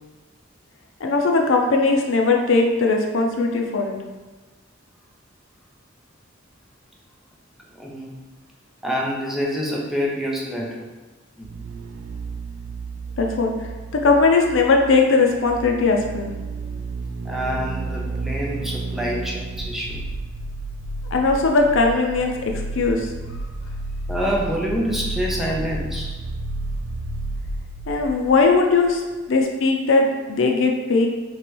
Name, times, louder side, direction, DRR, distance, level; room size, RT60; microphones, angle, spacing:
voice 1, 1.0-4.0 13.2-13.5 14.0-16.3 21.1-23.1 27.9-29.0 29.3-31.1, left 3 dB, 75° left, 2 dB, 0.5 m, -19 dB
voice 2, 7.7-8.2 8.8-10.9 11.4-11.5 17.2-20.1 21.5-21.6 24.1-26.1 29.1-29.2, equal, ahead, -3 dB, 0.6 m, -27 dB
sound 1, 11.4-29.0 29.2-29.3, right 2 dB, 90° right, 0.4 m, -32 dB
3.1 x 3.0 x 4.5 m, 1.2 s
head